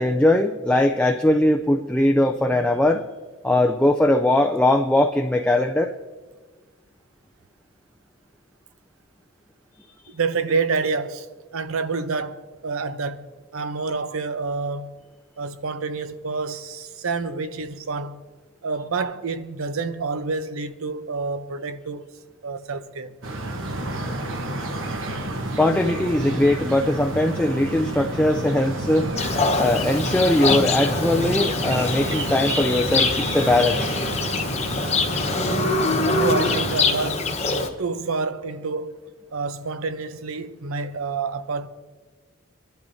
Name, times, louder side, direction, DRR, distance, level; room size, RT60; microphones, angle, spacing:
voice 1, 0.0-3.0 3.4-5.9 25.6-29.1 29.6-33.8, left 1 dB, 5° left, 0.4 m, -20 dB
voice 2, 10.1-11.3 11.5-15.0 15.4-18.2 18.6-23.1 36.0-37.3 37.8-39.0 39.3-41.7, right 4 dB, 90° right, 0.7 m, -28 dB
sound 1, 23.2-36.8, right 1 dB, 70° right, 1.1 m, -30 dB
Livestock farm animals working animals, 29.2-37.7, left 3 dB, 30° left, 1.0 m, -24 dB
25.0 x 11.5 x 2.7 m
head